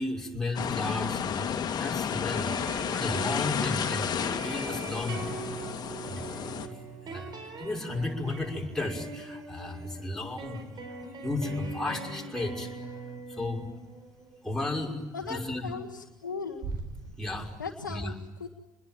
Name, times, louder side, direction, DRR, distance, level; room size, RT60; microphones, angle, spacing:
voice 1, 0.0-2.5 2.9-5.4 6.1-6.2 6.6-6.7 7.1-7.3 7.6-10.8 11.2-12.7 13.3-13.7 14.4-15.0 15.3-15.7 17.2-17.5 17.9-18.1, left 2 dB, 5° left, -1 dB, 5.7 m, -33 dB
sound 1, 0.5-6.7, left 8 dB, 40° left, 2.2 m, -32 dB
sound 2, 2.3-15.5 16.6-17.5, right 4 dB, 45° right, 4.6 m, -42 dB
voice 2, 15.1-16.6 17.6-18.1 18.4-18.5, left 5 dB, 90° left, 0 dB, 1.4 m, -37 dB
27.0 x 21.0 x 9.0 m, 1.0 s
figure-of-eight pair, 55°, 10 cm